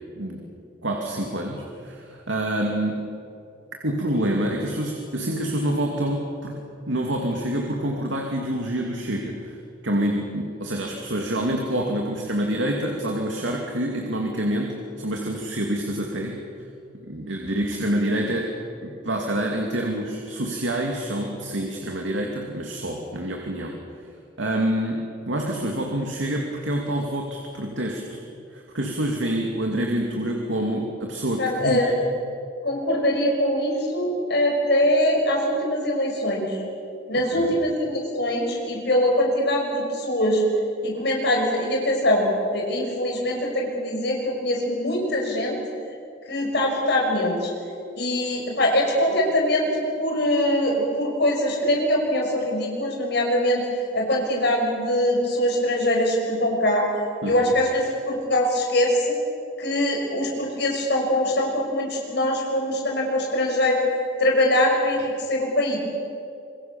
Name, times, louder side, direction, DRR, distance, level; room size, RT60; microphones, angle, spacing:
voice 1, 0.8-3.0 3.8-6.6 6.9-9.6 9.8-16.4 17.0-18.5 18.8-23.8 24.4-28.2 28.5-31.9 37.3-37.6 57.2-57.5, right 1 dB, 75° right, 1 dB, 2.5 m, -27 dB
voice 2, 31.4-31.9 32.6-36.6 37.1-40.4 40.8-45.5 46.3-47.5 48.0-53.6 53.9-56.8 57.2-59.2 59.6-63.8 64.2-65.8, left 1 dB, 60° left, 0 dB, 5.9 m, -23 dB
26.0 x 22.5 x 7.1 m, 2.5 s
head